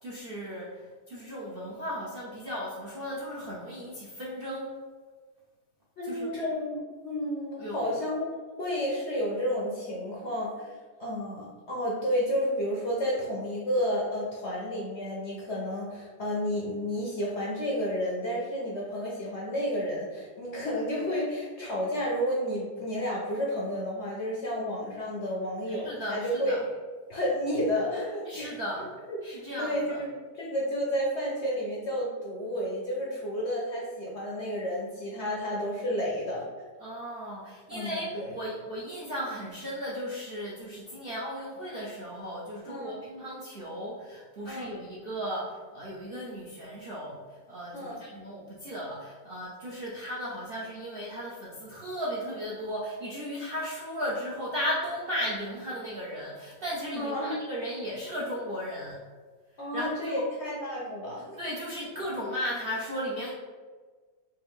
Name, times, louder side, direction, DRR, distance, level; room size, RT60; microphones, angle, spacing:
voice 1, 0.0-0.8 1.1-4.8 6.0-6.3 7.6-7.9 25.7-26.6 28.2-28.9 29.2-30.0 36.8-47.2 47.5-59.0 59.6-60.2 61.4-63.3, equal, 60° right, -7 dB, 0.6 m, -36 dB
voice 2, 6.0-8.3 8.6-26.6 27.1-28.5 29.1-29.2 29.6-36.5 37.7-38.3 42.7-43.0 44.4-44.7 47.7-48.0 57.0-57.4 59.6-61.4, equal, 60° left, -4 dB, 0.7 m, -31 dB
3.4 x 2.8 x 3.5 m, 1.4 s
omnidirectional pair, 1.8 m